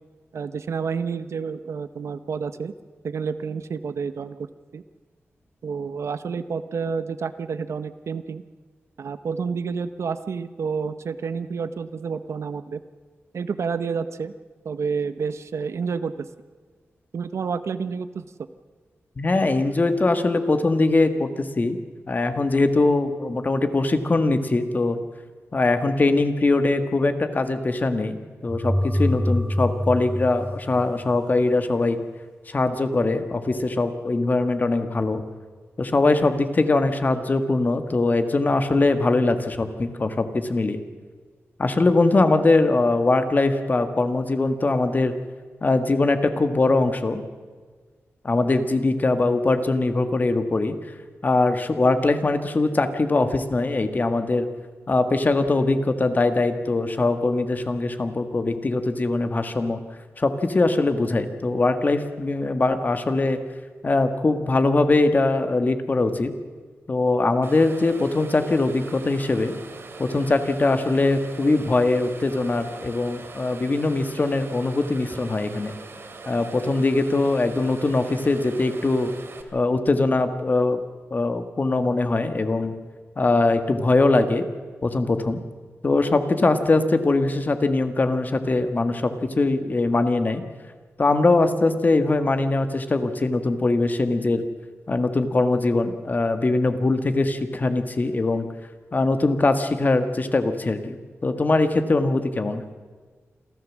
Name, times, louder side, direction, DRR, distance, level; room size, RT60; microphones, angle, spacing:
voice 1, 0.3-2.7 3.0-4.4 4.7-4.8 5.6-8.4 9.0-12.8 13.3-14.3 14.6-16.3 17.1-18.2, right 5 dB, 75° right, 12 dB, 0.8 m, -29 dB
voice 2, 19.2-21.8 22.1-25.0 25.5-32.0 32.5-35.2 35.8-40.8 41.6-45.1 45.6-47.2 48.2-50.7 51.2-54.5 54.9-59.8 60.2-63.4 63.8-66.3 66.9-69.5 70.0-75.7 76.3-79.1 79.5-80.8 81.1-82.7 83.2-84.4 84.8-85.4 85.8-90.4 91.0-94.4 94.9-98.5 98.9-101.0 101.2-102.6, left 2 dB, 35° left, 8 dB, 1.6 m, -22 dB
sound 1, 28.5-31.4, left 1 dB, ahead, 1.8 m, -25 dB
sound 2, 67.4-79.4, right 3 dB, 55° right, 2.6 m, -42 dB
27.5 x 13.5 x 7.4 m, 1.5 s
wide cardioid pair, 110°, 5 cm